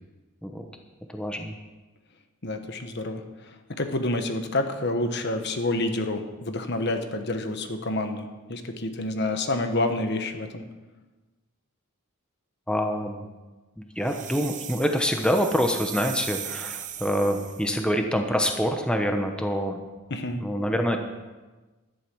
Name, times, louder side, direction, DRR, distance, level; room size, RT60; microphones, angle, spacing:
voice 1, 1.1-1.5 12.7-13.2 13.8-19.8 20.4-21.0, equal, 5° left, 4 dB, 0.9 m, -26 dB
voice 2, 2.4-3.5 3.8-10.6 20.1-20.4, left 2 dB, 50° left, 7 dB, 1.2 m, -28 dB
sound 1, 14.0-17.7, right 10 dB, 35° right, 0.8 m, -38 dB
12.0 x 11.0 x 6.2 m, 1.2 s
head